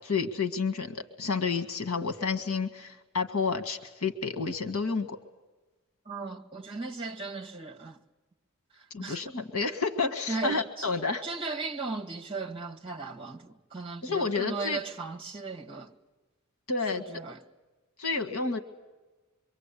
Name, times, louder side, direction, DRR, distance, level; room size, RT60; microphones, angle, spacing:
voice 1, 0.0-5.2 8.9-11.2 14.0-14.8 16.7-17.0 18.0-18.6, left 4 dB, 80° left, 1.8 m, -30 dB
voice 2, 6.1-8.0 8.7-9.2 10.3-10.9 11.2-15.9 16.9-17.4, right 3 dB, 25° right, 1.9 m, -37 dB
25.5 x 24.0 x 8.5 m
head